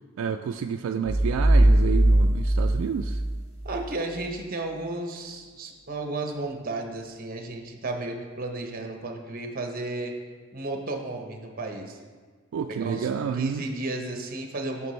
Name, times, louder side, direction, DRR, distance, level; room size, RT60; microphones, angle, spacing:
voice 1, 0.2-3.2 12.5-13.6, right 7 dB, 75° right, 5 dB, 0.3 m, -29 dB
sound 1, 1.0-3.9, right 1 dB, 85° left, 1.4 m, -20 dB
voice 2, 3.6-10.1 10.5-12.0 12.7-14.9, right 2 dB, 45° right, 3 dB, 0.9 m, -33 dB
9.4 x 6.0 x 3.2 m, 1.5 s
head